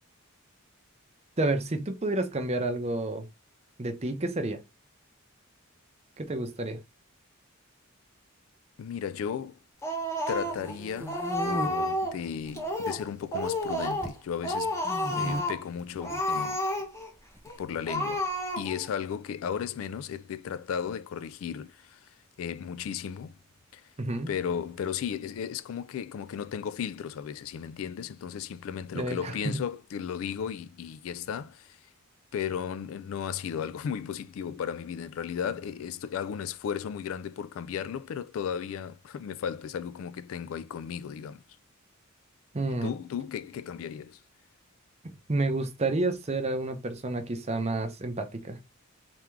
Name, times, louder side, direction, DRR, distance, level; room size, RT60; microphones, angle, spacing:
voice 1, 1.4-3.3 3.8-4.6 6.2-6.8 24.0-24.3 28.9-29.6 42.5-42.9 45.0-48.6, right 2 dB, 30° right, 0.7 m, -30 dB
voice 2, 8.8-9.6 10.3-14.8 15.2-16.6 17.6-18.3 18.6-23.3 23.7-23.8 24.3-31.8 32.3-41.4 42.8-44.2, left 7 dB, 70° left, 0.3 m, -35 dB
Speech, 9.8-10.7 11.1-12.2 12.5-13.0 13.3-14.2 14.4-15.6 16.0-17.1 17.4-17.6 17.9-18.9, left 1 dB, 15° left, 1.1 m, -31 dB
sound 1, 10.3-11.7 12.3-13.0 13.2-14.2 14.8-15.4 16.0-16.2 17.3-18.3, right 1 dB, 10° right, 0.3 m, -36 dB
3.5 x 3.5 x 3.1 m
head